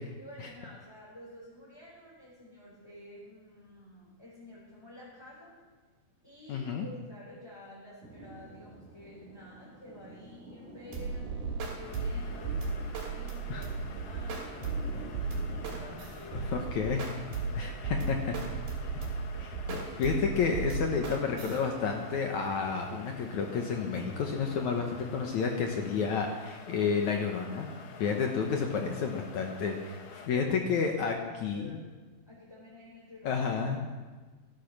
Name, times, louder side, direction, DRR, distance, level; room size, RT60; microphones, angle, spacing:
voice 1, 0.2-5.5 6.2-14.8 15.6-16.7 17.4-17.8 28.2-28.3 30.2-30.5 31.5-31.9 32.3-33.4, left 1 dB, 5° left, -7 dB, 4.1 m, -50 dB
voice 2, 6.5-6.9 13.5-13.6 16.3-17.0 17.6-18.3 18.8-18.9 19.4-27.7 28.0-31.8 33.2-33.8, left 5 dB, 65° left, 2 dB, 2.1 m, -31 dB
sound 1, 8.0-26.1, right 1 dB, 35° right, 4.7 m, -50 dB
sound 2, 10.9-21.6, right 4 dB, 75° right, 4.6 m, -35 dB
sound 3, 11.8-30.3, left 5 dB, 90° left, 1.1 m, -49 dB
17.0 x 12.0 x 6.1 m, 1.3 s
omnidirectional pair, 4.3 m